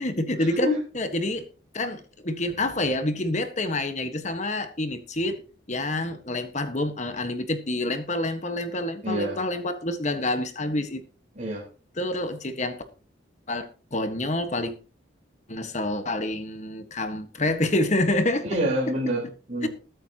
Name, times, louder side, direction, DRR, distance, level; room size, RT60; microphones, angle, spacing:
voice 1, 0.0-1.5 1.7-5.4 5.7-11.0 12.0-12.8 13.5-14.7 15.5-18.6 19.6-19.7, left 1 dB, 35° left, 1.5 m, -27 dB
voice 2, 9.0-9.4 11.4-11.7 18.5-19.7, equal, 35° right, 4.1 m, -27 dB
21.0 x 8.7 x 2.9 m
head